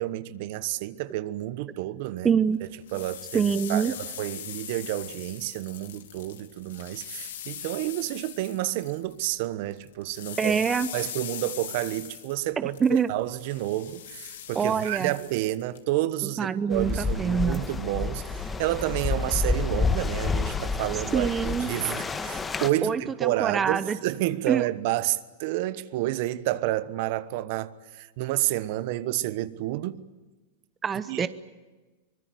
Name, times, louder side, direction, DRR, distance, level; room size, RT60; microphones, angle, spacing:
voice 1, 0.0-2.3 2.9-3.4 3.7-10.6 10.9-30.0 31.1-31.3, right 15 dB, 55° right, 1.2 m, -30 dB
voice 2, 2.2-2.6 3.3-3.9 10.4-10.9 12.6-13.1 14.5-15.1 16.2-17.6 21.1-21.7 22.8-24.0 24.5-24.7 30.8-31.3, right 6 dB, 20° right, 0.8 m, -25 dB
sound 1, 2.6-9.4 9.7-15.8, left 10 dB, 80° left, 2.7 m, -41 dB
sound 2, 16.7-22.7, left 4 dB, 15° left, 1.6 m, -29 dB
24.5 x 20.5 x 9.4 m
hypercardioid pair, 130°, 0 cm